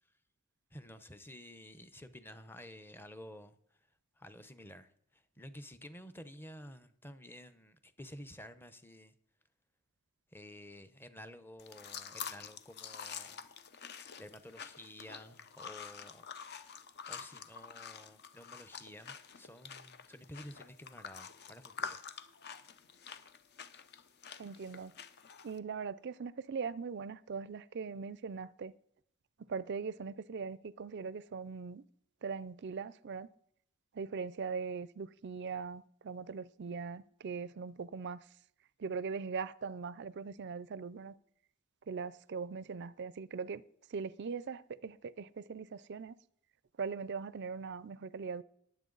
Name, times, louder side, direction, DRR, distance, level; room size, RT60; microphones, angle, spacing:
voice 1, 0.7-3.6 4.2-9.1 10.3-13.5 14.2-16.3 16.9-22.0, equal, 10° left, 0.7 m, -52 dB
sound 1, 11.6-25.6, left 6 dB, 50° left, 0.7 m, -47 dB
voice 2, 24.4-24.9 25.4-28.7 29.5-31.8 32.2-33.3 33.9-38.2 38.8-41.1 41.9-43.6 43.9-46.2 46.8-48.4, right 5 dB, 50° right, 0.4 m, -40 dB
20.5 x 7.8 x 3.9 m
head